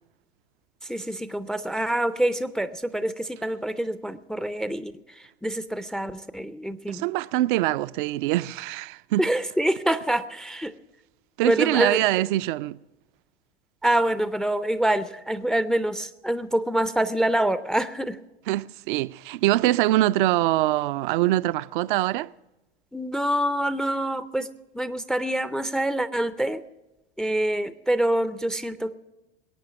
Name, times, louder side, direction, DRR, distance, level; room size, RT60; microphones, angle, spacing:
voice 1, 0.8-7.1 9.2-10.7 11.4-12.0 13.8-18.2 22.9-24.5 24.7-26.6 27.2-29.0, right 1 dB, ahead, 0.4 m, -26 dB
voice 2, 6.9-9.2 11.4-12.8 18.5-22.3, right 16 dB, 55° right, 0.4 m, -23 dB
21.5 x 8.8 x 6.0 m
figure-of-eight pair, 85°, 30 cm